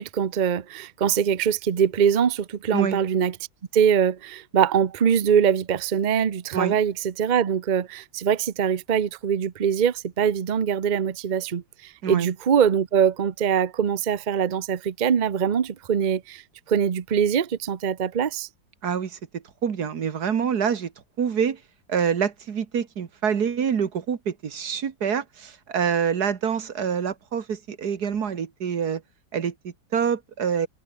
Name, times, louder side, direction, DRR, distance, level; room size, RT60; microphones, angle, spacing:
voice 1, 0.0-3.4 3.7-16.4 16.7-18.5, right 8 dB, 75° right, 0.4 m, -23 dB
voice 2, 18.8-20.9 21.2-21.6 21.9-29.0 29.3-30.7, right 7 dB, 55° right, 2.0 m, -26 dB
omnidirectional pair, 2.1 m